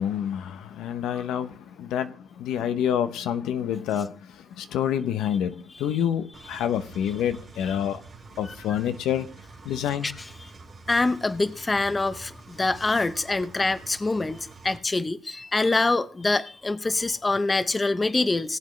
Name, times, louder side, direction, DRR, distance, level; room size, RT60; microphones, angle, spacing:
voice 1, 0.0-8.0 8.4-9.3 9.6-10.1, left 9 dB, 85° left, 0.8 m, -28 dB
Engine, 6.3-14.8, right 4 dB, 40° right, 2.7 m, -47 dB
voice 2, 10.9-18.6, left 3 dB, 20° left, 0.7 m, -25 dB
18.5 x 8.3 x 3.2 m
cardioid pair, 90°, 0 cm